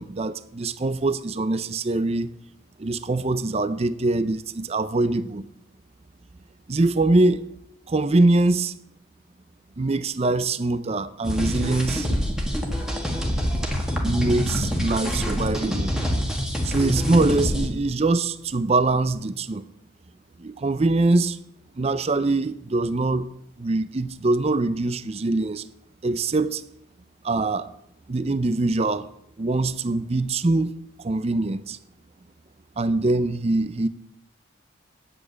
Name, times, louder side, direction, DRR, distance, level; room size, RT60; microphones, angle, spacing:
voice 1, 0.0-2.3 2.8-5.4 6.7-7.4 7.9-8.7 9.8-12.1 14.0-15.9 16.6-19.6 20.4-21.4 21.8-23.3 23.6-25.6 26.0-26.6 27.2-27.7 28.1-29.1 29.4-30.7 31.0-31.8 32.8-33.9, right 2 dB, 30° right, 0.5 m, -23 dB
sound 1, 11.2-17.7, equal, 5° right, 1.7 m, -26 dB
8.7 x 8.3 x 8.2 m
head